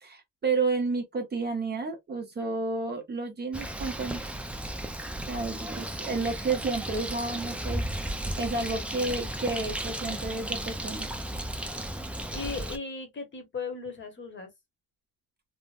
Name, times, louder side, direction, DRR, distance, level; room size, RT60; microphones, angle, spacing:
voice 1, 0.0-4.2 5.3-7.8 8.4-11.1, right 3 dB, 30° right, 0.8 m, -31 dB
Bird, 3.5-12.8, right 1 dB, 5° right, 0.4 m, -34 dB
voice 2, 5.3-5.7 12.3-14.5, left 4 dB, 35° left, 1.1 m, -37 dB
3.4 x 2.0 x 2.4 m
cardioid pair, 135°, 35 cm